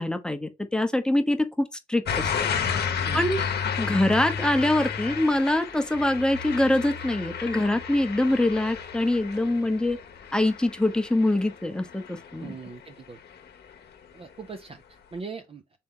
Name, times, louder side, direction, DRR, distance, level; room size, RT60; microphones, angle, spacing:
voice 1, 0.0-2.3 2.8-3.4 3.8-10.0 10.3-12.6, left 1 dB, 5° left, 0.8 m, -24 dB
sound 1, 2.1-12.9 13.3-13.7, left 7 dB, 55° left, 0.9 m, -32 dB
voice 2, 12.4-13.2 14.1-15.6, right 5 dB, 30° right, 0.5 m, -40 dB
4.2 x 3.4 x 3.7 m
cardioid pair, 90°, 20 cm